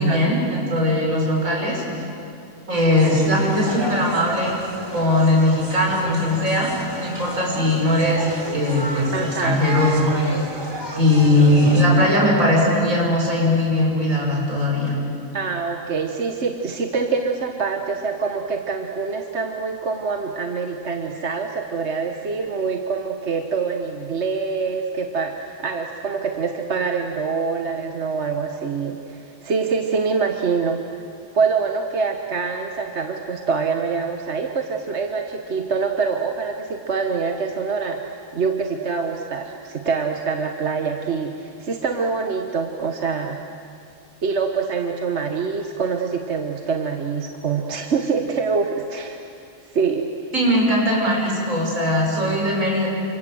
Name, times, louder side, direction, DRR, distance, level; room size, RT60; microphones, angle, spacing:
voice 1, 0.0-1.8 2.7-4.6 4.9-8.3 8.5-10.1 10.9-14.9 50.3-52.9, left 1 dB, 80° right, -2 dB, 6.8 m, -19 dB
sound 1, 3.0-11.8, equal, 20° right, 3.0 m, -33 dB
voice 2, 9.1-9.6 15.3-31.0 31.3-38.0 38.3-43.4 44.2-49.2 49.7-50.1, right 5 dB, 55° right, 4 dB, 1.5 m, -25 dB
29.5 x 26.0 x 7.8 m, 2.4 s
omnidirectional pair, 1.4 m